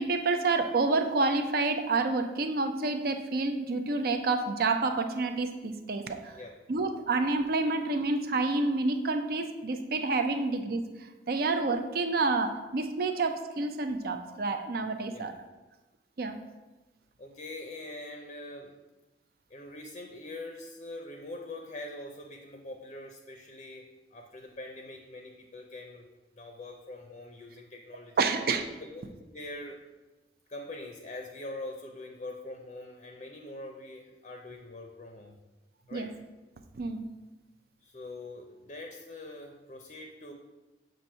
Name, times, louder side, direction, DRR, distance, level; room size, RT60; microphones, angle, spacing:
voice 1, 0.0-6.3 6.7-10.8 11.3-15.3 16.2-16.4 28.2-28.7 35.9-36.1 36.8-37.1, right 3 dB, 55° right, 7 dB, 0.5 m, -28 dB
voice 2, 17.2-18.7 19.5-23.8 24.1-26.1 26.3-28.3 28.8-29.0 29.3-29.8 30.5-35.4 35.9-36.1 37.8-40.3, left 2 dB, 40° left, 2 dB, 0.5 m, -43 dB
7.5 x 2.6 x 5.5 m, 1.1 s
head